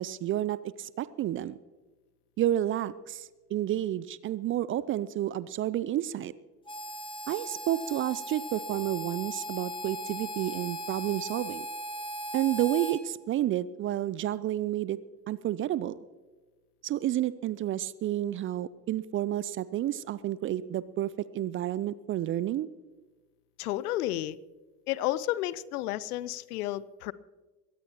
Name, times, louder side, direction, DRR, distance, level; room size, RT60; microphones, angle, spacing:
voice 1, 0.0-1.6 2.4-6.3 7.3-11.7 12.3-15.0 15.3-15.9 16.8-22.7, right 12 dB, 30° right, 18 dB, 0.4 m, -30 dB
Harmonica, 6.7-13.0, equal, 10° left, 2.1 m, -38 dB
voice 2, 23.6-24.4 24.9-27.1, left 14 dB, 65° left, 20 dB, 0.7 m, -31 dB
22.5 x 17.0 x 3.0 m, 1.3 s
figure-of-eight pair, 60°, 48 cm